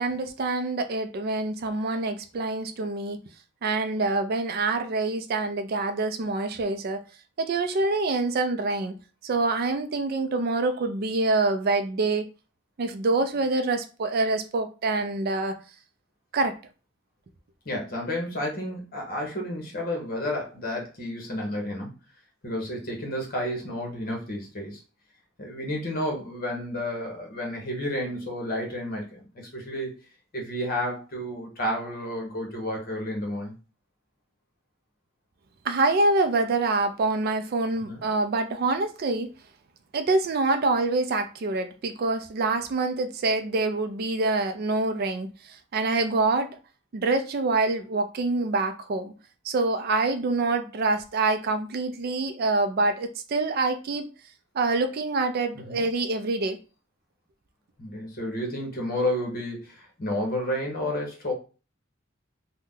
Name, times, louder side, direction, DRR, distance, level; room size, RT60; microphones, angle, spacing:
voice 1, 0.0-3.2 3.6-7.0 7.4-8.9 9.2-12.3 12.8-15.6 16.3-16.6 35.6-39.3 39.9-46.6 46.9-49.1 49.4-54.1 54.6-56.6, right 3 dB, 50° right, 0.4 m, -26 dB
voice 2, 17.6-21.9 22.4-24.8 25.4-29.9 30.3-33.5 37.8-38.0 55.5-55.8 57.8-61.3, left 1 dB, 50° left, 1.0 m, -31 dB
2.8 x 2.1 x 3.6 m
head